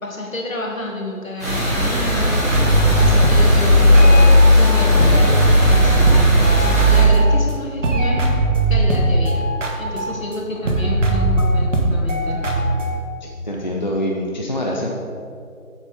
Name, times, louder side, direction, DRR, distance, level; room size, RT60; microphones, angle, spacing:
voice 1, 0.0-2.4 3.0-8.3 8.7-9.5 9.8-12.4, left 1 dB, 70° left, -1 dB, 1.9 m, -29 dB
sound 1, 1.4-7.0, left 1 dB, 10° right, 1.1 m, -14 dB
sound 2, 2.5-4.7 5.0-7.5 7.8-13.0, right 1 dB, 60° right, 1.3 m, -19 dB
voice 2, 13.2-14.9, equal, 35° left, -2 dB, 0.5 m, -25 dB
9.3 x 7.3 x 3.5 m, 2.3 s
figure-of-eight pair, 155°, 42 cm